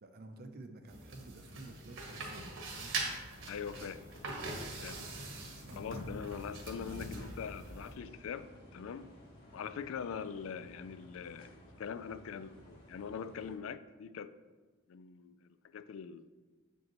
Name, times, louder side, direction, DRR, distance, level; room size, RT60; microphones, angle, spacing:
voice 1, 0.0-3.0 6.8-7.2 10.6-10.7, right 2 dB, 50° right, 7 dB, 0.6 m, -51 dB
sound 1, 0.9-7.9, right 2 dB, 65° right, 1.2 m, -42 dB
sound 2, 3.3-13.5, equal, 50° left, 1.9 m, -56 dB
voice 2, 3.5-4.0 4.8-5.0 5.7-9.1 9.5-11.5 11.8-14.3 14.9-16.3, left 7 dB, 70° left, 13 dB, 0.3 m, -43 dB
7.1 x 5.2 x 3.0 m, 1.3 s
head